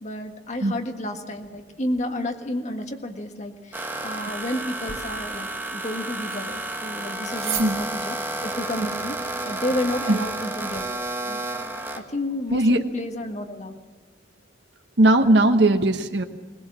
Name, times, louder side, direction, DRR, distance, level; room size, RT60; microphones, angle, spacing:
voice 1, 0.0-9.2 9.4-10.9 11.3-11.4 12.0-13.8, left 1 dB, 40° left, 5 dB, 1.6 m, -31 dB
sound 1, 3.7-12.0, right 2 dB, 10° right, 1.4 m, -31 dB
sound 2, 4.8-10.8, right 8 dB, 65° right, 3.3 m, -40 dB
voice 2, 12.5-12.8 15.0-16.2, right 1 dB, 80° right, 7 dB, 1.2 m, -18 dB
21.0 x 19.0 x 7.5 m, 1.3 s
head